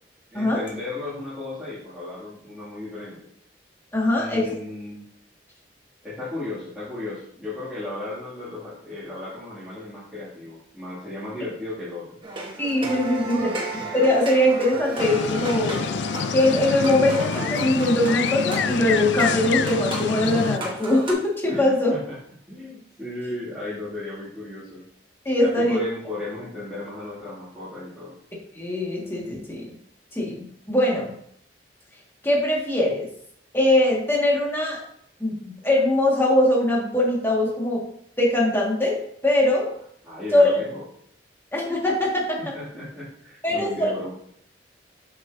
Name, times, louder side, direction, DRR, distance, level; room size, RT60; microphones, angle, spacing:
voice 1, 0.3-3.3 4.1-5.1 6.0-12.2 13.1-13.6 21.5-22.2 22.5-24.9 25.4-28.2 40.0-40.8 42.4-44.1, left 2 dB, ahead, -13 dB, 2.5 m, -35 dB
voice 2, 3.9-4.5 12.6-15.8 16.3-21.9 25.3-25.8 28.6-29.6 30.2-30.3 30.7-31.1 32.2-33.1 33.5-34.8 35.2-37.8 38.2-39.0 39.2-39.7 40.3-40.6 41.5-42.4 43.4-43.9, left 1 dB, 15° left, -3 dB, 1.9 m, -21 dB
sound 1, 12.2-21.1, right 2 dB, 30° right, 1.4 m, -34 dB
sound 2, 15.0-20.6, left 6 dB, 70° left, 0.4 m, -26 dB
8.0 x 6.1 x 2.8 m, 0.67 s
head